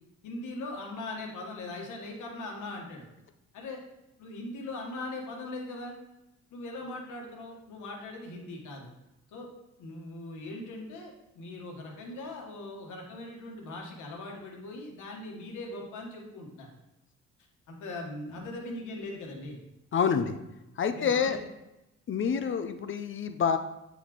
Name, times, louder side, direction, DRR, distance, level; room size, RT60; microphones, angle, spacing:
voice 1, 0.2-3.1 3.5-3.8 4.2-5.9 6.5-8.9 9.3-9.5 9.8-16.7 17.7-19.6 20.1-20.3 20.9-21.4, left 2 dB, 80° left, 0 dB, 1.4 m, -40 dB
voice 2, 19.9-20.3 20.8-21.4 22.1-23.6, left 7 dB, 40° left, 8 dB, 0.5 m, -27 dB
8.3 x 4.1 x 3.0 m, 0.93 s
cardioid pair, 90°, 30 cm